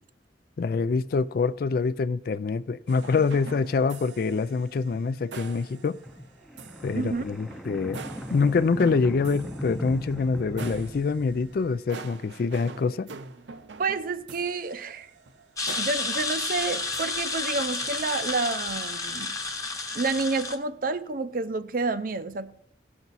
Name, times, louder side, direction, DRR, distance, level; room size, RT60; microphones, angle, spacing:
voice 1, 0.6-6.0 6.8-8.0 8.3-13.1, left 4 dB, 55° left, 0.3 m, -25 dB
sound 1, 2.9-18.0, right 4 dB, 85° right, 0.7 m, -46 dB
sound 2, 6.0-11.9, equal, ahead, 0.6 m, -38 dB
voice 2, 6.9-7.2 13.8-15.1 15.8-19.4 19.9-22.5, right 3 dB, 50° right, 0.5 m, -29 dB
sound 3, 15.6-20.6, left 3 dB, 20° left, 1.0 m, -31 dB
17.0 x 5.9 x 4.1 m
head